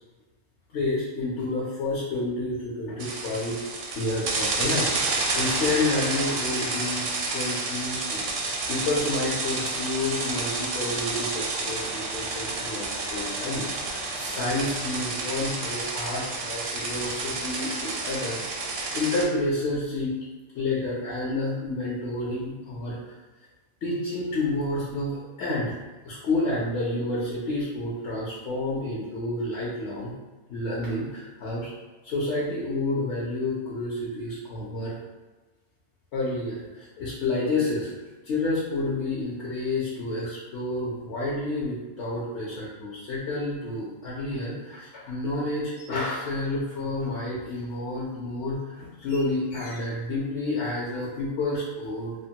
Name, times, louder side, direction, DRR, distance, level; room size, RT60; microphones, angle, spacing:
voice 1, 0.7-3.6 4.0-18.4 18.9-20.1 20.5-23.0 23.8-25.7 26.0-30.1 30.5-31.7 32.0-34.9 36.1-37.9 38.2-52.2, left 2 dB, 70° left, -6 dB, 0.9 m, -29 dB
sound 1, 3.0-19.2, right 3 dB, 60° right, 0.6 m, -30 dB
3.0 x 2.1 x 2.8 m, 1.2 s
omnidirectional pair, 1.2 m